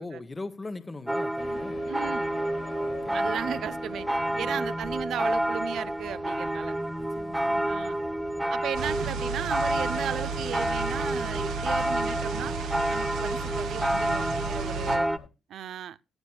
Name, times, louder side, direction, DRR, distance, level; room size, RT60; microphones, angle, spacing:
voice 1, 0.0-1.9 2.8-3.3 4.3-4.7 7.0-7.8, left 3 dB, 25° left, 1.0 m, -41 dB
sound 1, 1.1-15.2, right 1 dB, 5° right, 0.8 m, -29 dB
sound 2, 1.4-15.3, left 5 dB, 60° left, 2.4 m, -47 dB
voice 2, 1.9-2.3 3.1-6.8 7.6-8.0 8.5-12.6 12.9-15.1 15.5-16.0, right 10 dB, 70° right, 0.6 m, -36 dB
sound 3, 8.7-15.0, right 5 dB, 90° right, 2.1 m, -34 dB
17.0 x 11.5 x 2.3 m
cardioid pair, 90°, 0 cm